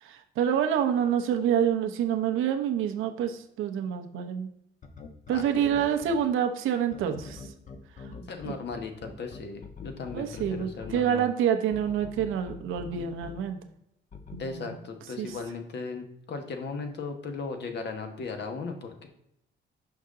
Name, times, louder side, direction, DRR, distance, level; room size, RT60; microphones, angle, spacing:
voice 1, 0.0-4.5 5.3-7.5 8.0-8.1 8.4-8.5 10.1-13.6 14.3-14.8 15.2-15.3, right 9 dB, 85° right, 5 dB, 0.9 m, -27 dB
sound 1, 4.8-6.1 6.9-10.9 11.7-13.3 14.1-14.4, left 5 dB, 40° left, 1.0 m, -43 dB
voice 2, 8.3-11.3 14.4-19.1, left 4 dB, 60° left, 5 dB, 1.3 m, -37 dB
5.9 x 5.6 x 3.7 m, 0.78 s
cardioid pair, 90°, 20 cm